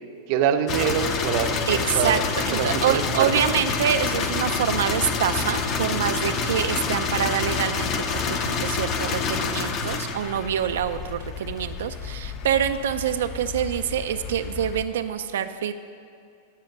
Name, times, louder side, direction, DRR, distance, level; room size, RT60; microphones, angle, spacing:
voice 1, 0.3-2.2 2.5-3.4, right 8 dB, 35° right, 7 dB, 0.6 m, -25 dB
sound 1, 0.7-14.9, left 5 dB, 25° left, 0.6 m, -28 dB
voice 2, 1.7-15.7, right 9 dB, 80° right, 9 dB, 0.5 m, -26 dB
10.5 x 8.2 x 6.7 m, 2.4 s
supercardioid pair, 175°, 0 cm